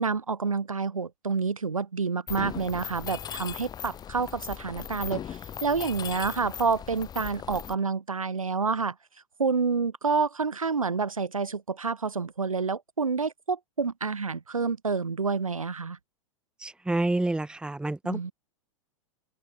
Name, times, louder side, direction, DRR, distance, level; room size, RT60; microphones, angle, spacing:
voice 1, 0.0-8.9 9.4-16.0 18.0-18.3, right 5 dB, 80° right, 6.5 m, -28 dB
Mechanisms, 2.3-7.7, left 9 dB, 25° left, 2.0 m, -38 dB
voice 2, 16.6-18.3, right 2 dB, 5° right, 2.4 m, -28 dB
open air
figure-of-eight pair, 95°, 17 cm